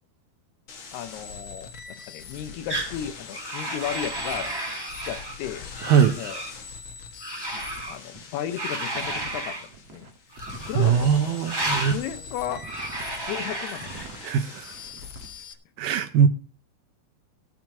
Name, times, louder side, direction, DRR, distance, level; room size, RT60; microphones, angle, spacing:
sound 1, 0.7-15.5, left 5 dB, 55° left, 1.3 m, -42 dB
voice 1, 0.9-4.6 5.0-5.7 6.2-6.4 7.5-9.6 9.9-10.1 10.5-12.7 13.2-14.1, left 10 dB, 85° left, 3.0 m, -35 dB
sound 2, 2.7-2.9 3.3-5.4 5.7-6.5 7.2-8.0 8.6-9.7 10.3-10.9 11.4-12.0 12.6-14.4, right 1 dB, 15° right, 0.8 m, -32 dB
voice 2, 5.8-6.2 10.7-12.0 14.2-14.8 15.8-16.3, right 7 dB, 75° right, 2.2 m, -21 dB
sound 3, 7.8-7.9 8.1-8.2 8.9-11.0 11.6-12.0 12.4-13.1 13.7-14.2 14.7-15.3, right 5 dB, 55° right, 2.0 m, -45 dB
16.5 x 6.0 x 6.0 m
omnidirectional pair, 4.6 m